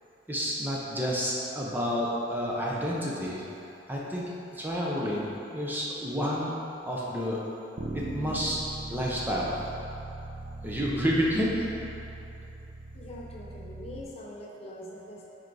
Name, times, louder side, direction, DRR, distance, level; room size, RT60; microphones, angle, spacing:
voice 1, 0.3-3.4 3.9-4.3 4.5-6.5 6.8-7.4 7.9-8.6 8.9-9.7 10.6-11.6, equal, 10° right, -5 dB, 0.6 m, -29 dB
Bass guitar, 7.8-14.0, right 2 dB, 70° right, 0.7 m, -40 dB
voice 2, 12.9-15.3, left 1 dB, 35° left, -3 dB, 0.6 m, -43 dB
4.7 x 4.4 x 4.7 m, 2.9 s
head